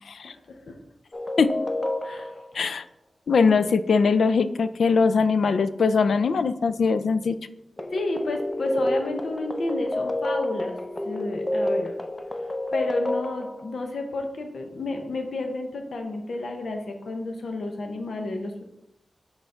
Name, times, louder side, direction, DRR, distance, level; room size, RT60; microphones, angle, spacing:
voice 1, 0.2-0.8 2.0-2.3 7.9-10.8 11.0-11.9 12.7-18.6, left 2 dB, 65° left, 4 dB, 0.7 m, -31 dB
sound 1, 1.1-2.5 7.8-13.8, left 1 dB, 20° left, 0.4 m, -29 dB
voice 2, 3.3-7.4, left 5 dB, 85° left, 13 dB, 0.3 m, -21 dB
5.6 x 4.0 x 5.3 m, 0.87 s
wide cardioid pair, 155°, 0 cm